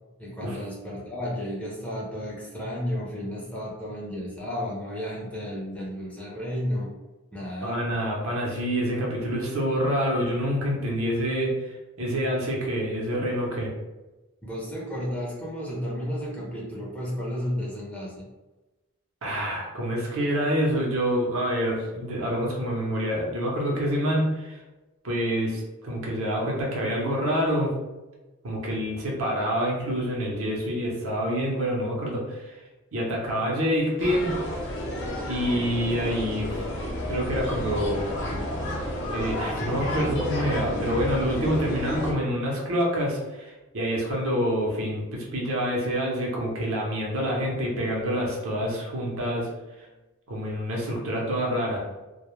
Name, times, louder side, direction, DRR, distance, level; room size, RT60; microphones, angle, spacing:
voice 1, 0.2-6.9 7.3-7.8 14.4-18.3, equal, 5° left, -5 dB, 0.5 m, -32 dB
voice 2, 7.6-13.7 19.2-24.6 25.0-27.7 28.4-32.6 32.9-34.4 35.2-36.7 37.1-38.1 39.0-49.5 49.8-49.9 50.3-51.9, equal, 70° right, -2 dB, 0.7 m, -27 dB
sound 1, 34.0-42.1, left 1 dB, 55° left, 0.6 m, -31 dB
2.2 x 2.0 x 3.0 m, 1.1 s
head